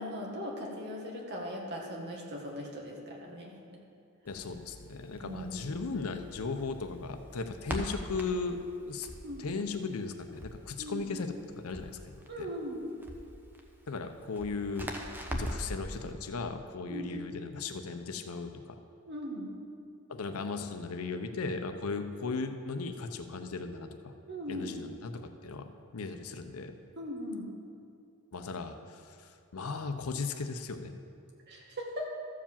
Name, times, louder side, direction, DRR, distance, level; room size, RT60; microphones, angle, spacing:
voice 1, 0.0-3.8 5.2-5.6 9.2-9.5 10.8-11.1 12.3-12.8 16.9-17.1 19.1-19.5 24.3-24.7 27.0-27.5 31.5-32.1, equal, 50° right, -1 dB, 1.7 m, -39 dB
voice 2, 4.2-8.6 8.8-9.1 9.4-12.5 13.9-14.9 15.3-18.8 20.1-24.1 24.5-26.7 28.3-30.9, left 4 dB, 85° left, 7 dB, 0.7 m, -37 dB
Crackle, 4.3-15.8, equal, 10° right, 0.8 m, -43 dB
13.5 x 4.9 x 7.2 m, 2.5 s
head